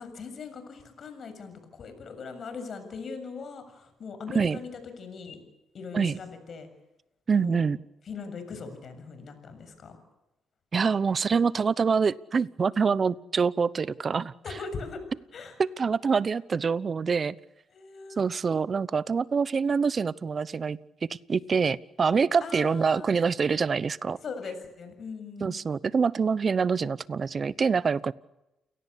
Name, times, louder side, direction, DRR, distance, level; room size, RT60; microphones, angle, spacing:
voice 1, 0.0-5.4 5.7-6.7 7.4-7.6 8.1-10.0 14.4-15.0 15.3-15.5 17.7-18.3 22.4-23.1 24.2-25.6, left 5 dB, 55° left, 9 dB, 7.0 m, -40 dB
voice 2, 7.3-7.8 10.7-14.3 15.6-17.4 18.2-24.2 25.4-28.1, right 5 dB, 40° right, 19 dB, 0.9 m, -25 dB
29.5 x 18.0 x 8.4 m, 0.94 s
cardioid pair, 90°, 0 cm